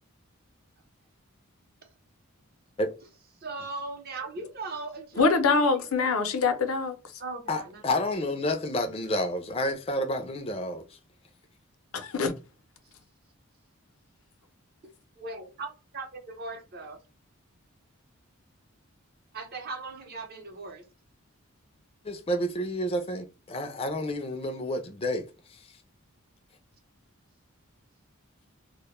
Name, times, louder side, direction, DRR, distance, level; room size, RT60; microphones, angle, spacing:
voice 1, 3.4-5.9 7.2-7.8 15.2-17.0 19.3-20.8, right 3 dB, 45° right, 0.6 m, -39 dB
voice 2, 5.2-7.0 11.9-12.3, left 4 dB, 85° left, 0.5 m, -24 dB
voice 3, 7.5-10.8 22.0-25.3, left 1 dB, 25° left, 0.3 m, -30 dB
2.1 x 2.1 x 2.9 m
head